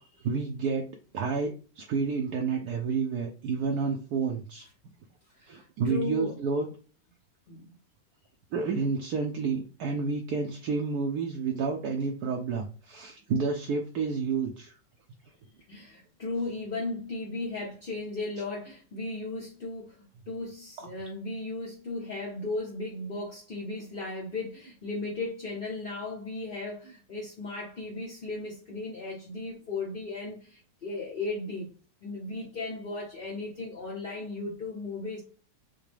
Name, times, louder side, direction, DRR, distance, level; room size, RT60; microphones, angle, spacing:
voice 1, 0.2-0.9 1.1-4.7 5.5-6.7 8.5-14.7, right 5 dB, 70° right, 3 dB, 1.0 m, -30 dB
voice 2, 5.3-6.4 7.5-7.7 15.7-20.0 20.3-31.7 32.0-35.2, left 2 dB, 50° left, -3 dB, 0.6 m, -36 dB
5.7 x 2.1 x 3.3 m, 0.37 s
omnidirectional pair, 2.0 m